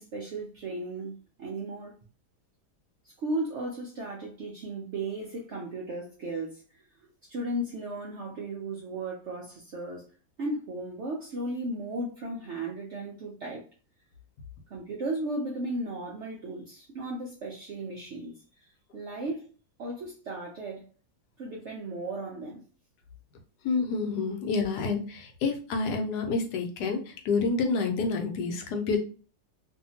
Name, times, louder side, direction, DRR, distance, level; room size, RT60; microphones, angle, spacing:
voice 1, 0.0-1.9 3.0-10.1 10.4-13.7 14.7-19.5 19.8-20.8 21.4-22.6, right 2 dB, 70° right, 0.7 m, -35 dB
voice 2, 23.6-29.0, left 4 dB, 75° left, 1.2 m, -28 dB
2.7 x 2.5 x 2.8 m
omnidirectional pair, 1.8 m